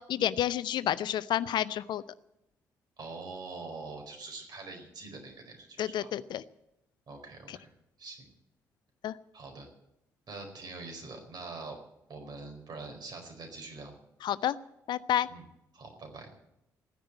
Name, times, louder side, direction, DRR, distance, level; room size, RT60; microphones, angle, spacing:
voice 1, 0.0-2.0 5.8-6.4 9.0-9.1 14.2-14.5 14.9-15.3, left 11 dB, 55° left, 17 dB, 0.5 m, -29 dB
voice 2, 3.0-6.1 7.1-7.7 8.0-8.3 9.3-9.7 10.3-11.8 12.1-13.9 15.3-15.4 15.7-16.3, right 3 dB, 50° right, 3 dB, 4.7 m, -44 dB
15.0 x 10.0 x 9.0 m, 0.86 s
figure-of-eight pair, 40°, 9 cm